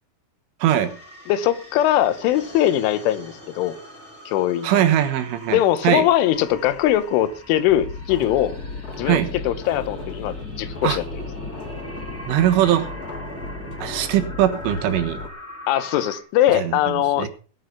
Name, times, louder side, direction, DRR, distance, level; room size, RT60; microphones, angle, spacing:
sound 1, 0.6-16.2, equal, 5° left, 3.3 m, -41 dB
voice 1, 0.6-0.9 4.6-6.0 9.1-9.3 10.8-11.0 12.3-12.9 13.8-15.2 16.5-17.3, right 11 dB, 85° right, 4.0 m, -21 dB
voice 2, 1.3-3.8 4.3-4.8 5.5-8.6 9.0-9.2 9.4-11.0 15.7-17.3, left 12 dB, 85° left, 3.5 m, -21 dB
sound 2, 7.7-15.3, left 3 dB, 30° left, 1.8 m, -34 dB
19.0 x 7.6 x 5.6 m
omnidirectional pair, 5.5 m